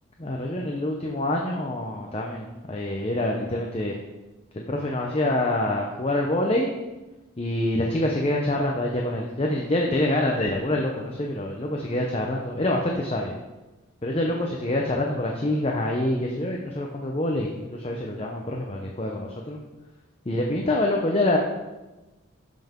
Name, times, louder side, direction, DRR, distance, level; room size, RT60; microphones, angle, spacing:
voice 1, 0.2-4.0 4.7-6.7 7.4-13.4 14.0-19.6 20.3-21.4, left 1 dB, 30° left, 0 dB, 0.7 m, -26 dB
12.5 x 5.7 x 3.7 m, 1.1 s
head